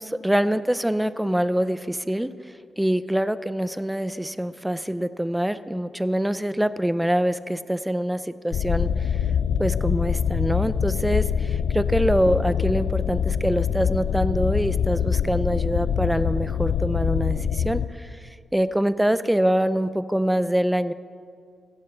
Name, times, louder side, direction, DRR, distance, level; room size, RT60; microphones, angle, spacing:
voice 1, 0.0-2.3 2.8-8.9 9.6-18.1 18.5-20.9, right 1 dB, 5° right, 14 dB, 0.4 m, -24 dB
sound 1, 8.5-17.9, left 8 dB, 75° left, 0.3 m, -24 dB
15.5 x 15.0 x 3.3 m, 2.2 s
cardioid pair, 120°, 0 cm